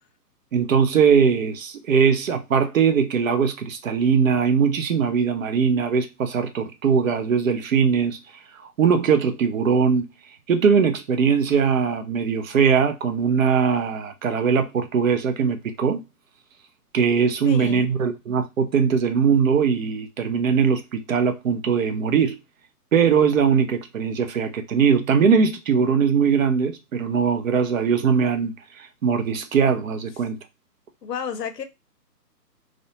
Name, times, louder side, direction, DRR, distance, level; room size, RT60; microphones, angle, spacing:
voice 1, 0.5-8.2 8.8-10.0 10.5-16.0 16.9-22.4 22.9-30.4, right 6 dB, 55° right, 0.6 m, -20 dB
voice 2, 17.4-17.8 31.0-31.6, left 7 dB, 75° left, 0.7 m, -31 dB
2.5 x 2.1 x 2.7 m
hypercardioid pair, 155°, 49 cm